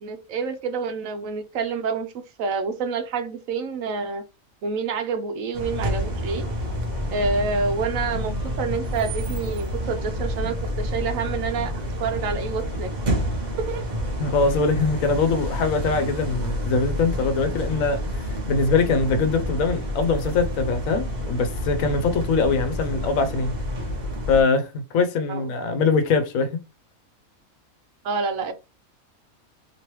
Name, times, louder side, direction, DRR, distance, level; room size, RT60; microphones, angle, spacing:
voice 1, 0.0-2.1 2.4-4.2 4.6-6.5 7.1-12.9 13.6-13.9 22.5-23.0 25.3-25.4 28.0-28.5, right 4 dB, 75° right, 1.0 m, -28 dB
sound 1, 5.5-24.4, equal, 35° right, 0.8 m, -29 dB
voice 2, 14.2-18.0 18.5-23.5 24.3-26.6, left 4 dB, 75° left, 1.0 m, -22 dB
3.0 x 2.9 x 3.0 m
omnidirectional pair, 1.5 m